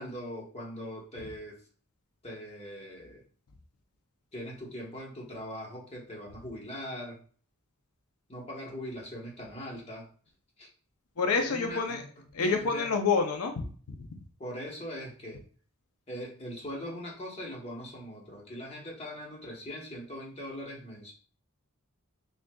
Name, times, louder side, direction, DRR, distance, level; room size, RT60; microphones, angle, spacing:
voice 1, 0.0-1.6 2.2-3.2 4.3-7.2 8.3-10.1 10.6-10.7 11.4-12.0 12.4-12.9 14.4-15.4 16.1-21.1, equal, 30° left, -3 dB, 1.1 m, -41 dB
voice 2, 11.2-12.0 12.3-14.0, left 4 dB, 85° left, 5 dB, 0.6 m, -28 dB
6.2 x 2.4 x 2.3 m, 0.44 s
head